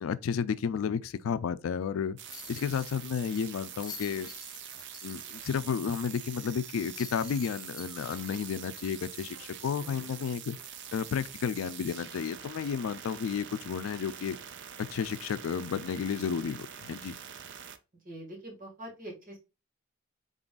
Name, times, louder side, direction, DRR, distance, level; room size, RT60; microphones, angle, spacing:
voice 1, 0.0-2.2 2.5-4.3 5.0-10.6 10.9-14.4 14.8-17.2, left 7 dB, 80° left, 0.4 m, -32 dB
sound 1, 2.2-17.8, right 9 dB, 60° right, 0.5 m, -45 dB
sound 2, 2.3-5.5 5.9-6.0 6.9-9.6 10.1-10.2 12.3-12.5, left 6 dB, 20° left, 0.5 m, -49 dB
voice 2, 18.0-19.4, right 1 dB, 45° right, 1.9 m, -44 dB
3.9 x 3.7 x 2.4 m
head